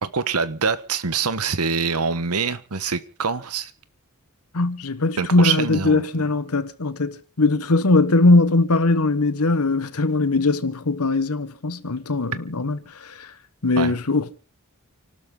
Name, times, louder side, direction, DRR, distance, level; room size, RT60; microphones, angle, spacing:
voice 1, 0.0-3.7 5.2-6.3 13.8-13.9, right 5 dB, 80° right, 1.3 m, -25 dB
voice 2, 4.5-13.3 13.6-14.4, left 2 dB, 80° left, 1.2 m, -20 dB
29.5 x 12.5 x 3.9 m
head